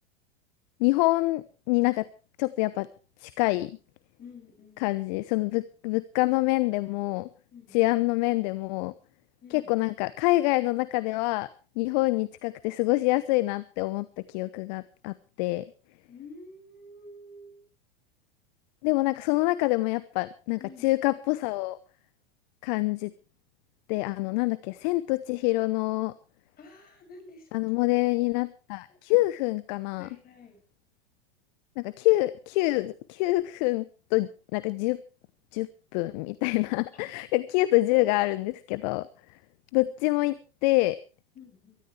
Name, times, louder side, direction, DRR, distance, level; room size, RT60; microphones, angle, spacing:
voice 1, 0.8-2.0 2.4-2.9 3.2-3.8 4.8-7.3 7.7-8.9 9.5-11.5 11.8-15.7 18.8-21.8 22.6-23.1 23.9-26.1 27.5-30.1 31.8-33.8 34.1-35.0 35.5-39.1 39.7-40.4 40.6-41.0, left 20 dB, 45° left, 17 dB, 0.8 m, -26 dB
voice 2, 4.2-5.0 7.5-7.8 9.4-9.7 16.1-17.6 20.6-20.9 26.6-27.5 28.9-29.0 30.0-30.6 36.9-37.0 37.9-38.1 41.3-41.8, left 3 dB, 30° left, 5 dB, 6.4 m, -48 dB
23.0 x 13.0 x 3.2 m, 0.34 s
figure-of-eight pair, 90°, 30 cm